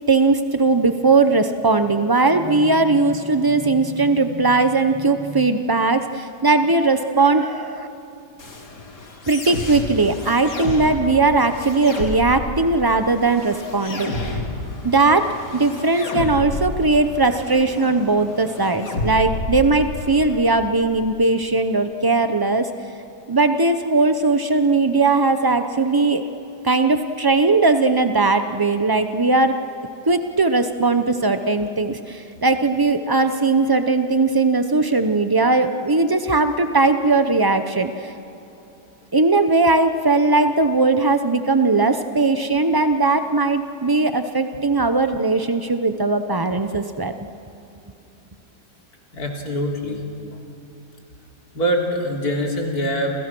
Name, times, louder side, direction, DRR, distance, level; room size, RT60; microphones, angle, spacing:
voice 1, 0.1-7.9 9.3-14.4 14.8-22.7 23.3-26.2 26.6-29.6 30.1-38.1 39.1-47.1, right 3 dB, 35° right, 8 dB, 0.3 m, -19 dB
sound 1, 8.4-20.4, left 2 dB, 85° left, 3.3 m, -31 dB
voice 2, 49.1-50.0 51.5-53.1, equal, 65° left, 0 dB, 3.9 m, -23 dB
29.0 x 29.0 x 6.1 m, 2.9 s
omnidirectional pair, 1.8 m